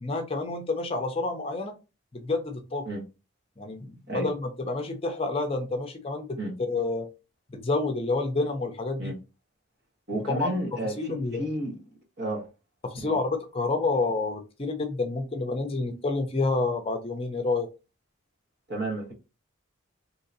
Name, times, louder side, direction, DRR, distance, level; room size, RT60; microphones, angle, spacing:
voice 1, 0.0-1.7 2.1-2.9 3.6-6.4 6.7-7.1 7.5-9.1 10.1-10.5 10.8-11.5 12.8-17.7, left 3 dB, 25° left, 0.5 m, -29 dB
voice 2, 10.1-11.7 12.2-12.5 13.0-13.2 18.7-19.1, right 1 dB, 50° right, 1.3 m, -31 dB
3.7 x 2.9 x 2.6 m
head